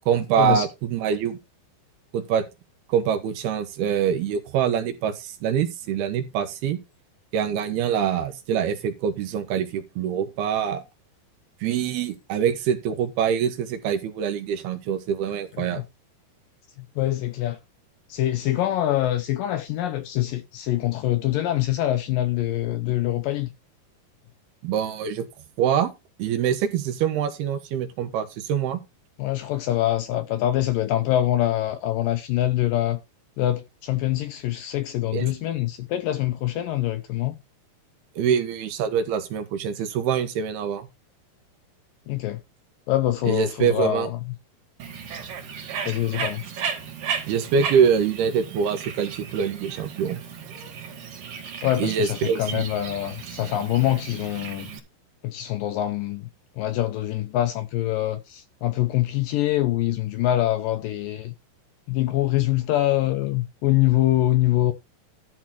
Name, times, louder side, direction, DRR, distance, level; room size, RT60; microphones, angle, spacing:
voice 1, 0.1-1.4 2.1-2.4 2.9-6.8 7.3-10.8 11.6-15.8 24.6-25.3 25.6-25.9 26.2-28.8 35.1-35.3 38.2-40.9 43.2-44.1 47.3-50.2 51.8-52.7, right 8 dB, 80° right, 3.3 m, -24 dB
voice 2, 16.8-17.6 18.1-23.5 29.2-33.0 33.4-37.4 42.1-42.4 42.9-44.2 45.9-46.4 51.6-54.7 55.2-56.3 56.6-61.3 61.9-64.7, left 14 dB, 80° left, 2.1 m, -24 dB
Bird, 44.8-54.8, right 7 dB, 60° right, 3.5 m, -35 dB
12.5 x 4.2 x 6.0 m
omnidirectional pair, 4.6 m